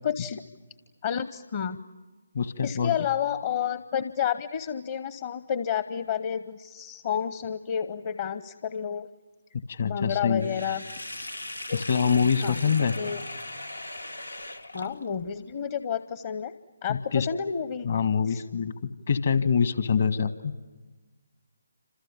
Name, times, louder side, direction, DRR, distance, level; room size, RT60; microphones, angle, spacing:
voice 1, 0.0-0.4 1.0-1.8 2.6-9.1 9.8-10.8 11.7-11.8 12.4-12.6 13.0-13.2 14.7-16.5 16.8-17.9 18.2-18.4, left 8 dB, 40° left, 13 dB, 0.8 m, -30 dB
voice 2, 2.3-2.9 9.7-10.6 11.7-13.0 16.9-17.3 17.8-18.7 19.1-20.5, left 6 dB, 55° left, 11 dB, 1.5 m, -25 dB
Sink (filling or washing), 10.4-15.3, left 1 dB, 90° left, 1.5 m, -39 dB
29.0 x 26.5 x 7.3 m, 1.2 s
figure-of-eight pair, 145°, 0 cm